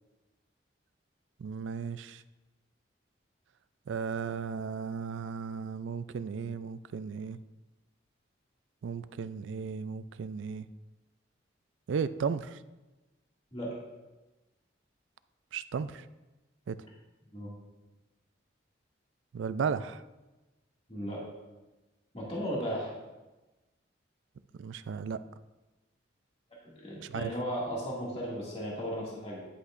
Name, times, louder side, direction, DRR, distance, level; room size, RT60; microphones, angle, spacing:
voice 1, 1.4-2.2 3.9-7.4 8.8-10.7 11.9-12.6 15.5-16.0 16.7-16.8 19.3-20.0 24.6-25.2 27.1-27.3, right 6 dB, 80° right, 14 dB, 0.4 m, -35 dB
voice 2, 20.9-21.2 22.1-22.9 26.8-29.4, equal, 30° left, -6 dB, 2.1 m, -35 dB
10.0 x 8.2 x 2.5 m, 1.1 s
head